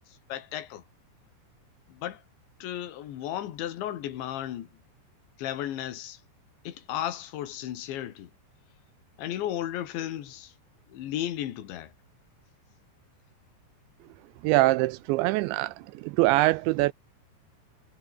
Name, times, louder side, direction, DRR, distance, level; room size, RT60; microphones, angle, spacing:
voice 1, 0.1-0.8 1.9-2.2 2.6-4.8 5.4-6.2 6.6-8.3 9.2-10.5 10.9-11.9, left 12 dB, 70° left, 4.3 m, -34 dB
voice 2, 14.4-16.9, right 20 dB, 85° right, 2.6 m, -23 dB
omnidirectional pair, 5.6 m